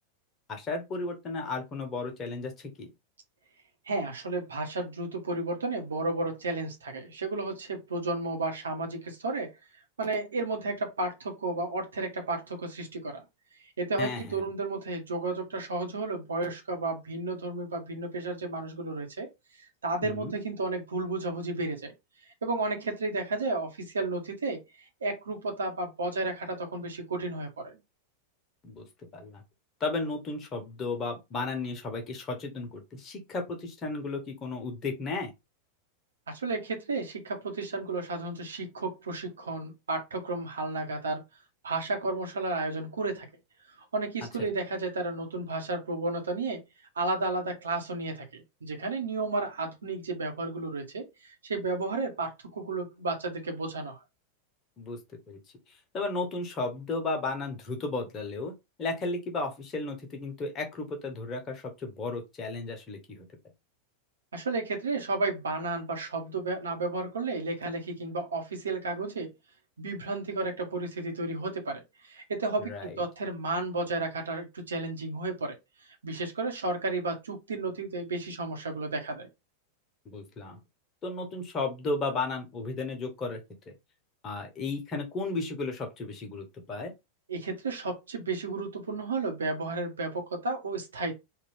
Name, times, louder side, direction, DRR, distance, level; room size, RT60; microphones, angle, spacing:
voice 1, 0.5-2.9 14.0-14.5 20.0-20.3 28.6-28.8 29.1-29.4 29.8-35.3 54.8-55.0 55.3-55.4 55.9-58.5 58.8-63.3 72.6-73.0 80.0-80.6 81.0-83.4 83.7-83.8 84.2-86.9, left 3 dB, 25° left, 1.4 m, -34 dB
voice 2, 3.8-9.5 10.0-13.2 13.8-19.3 19.8-21.9 22.4-24.6 25.0-27.8 36.3-41.2 41.6-43.3 43.9-46.6 46.9-54.0 64.3-69.3 69.8-75.5 75.9-79.3 87.3-91.1, right 3 dB, 70° right, 1.3 m, -32 dB
3.6 x 2.8 x 3.5 m
figure-of-eight pair, 90°, 0 cm